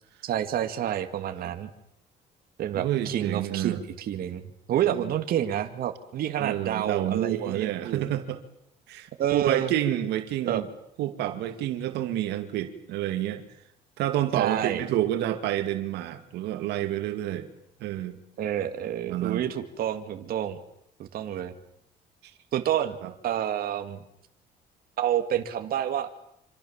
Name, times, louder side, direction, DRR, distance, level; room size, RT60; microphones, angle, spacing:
voice 1, 0.2-1.7 2.6-8.1 9.2-9.7 10.5-10.6 14.3-14.8 18.4-20.6 21.0-21.5 22.5-23.0 23.2-24.0 25.0-26.1, right 10 dB, 60° right, 7 dB, 2.2 m, -28 dB
voice 2, 2.7-3.8 4.8-5.1 6.4-8.4 8.9-10.7 11.0-13.4 14.0-17.5 17.8-18.2 19.1-19.4 22.2-22.3 23.0-23.1, right 12 dB, 85° right, 9 dB, 2.4 m, -29 dB
26.5 x 26.0 x 7.4 m, 0.76 s
cardioid pair, 110°, 17 cm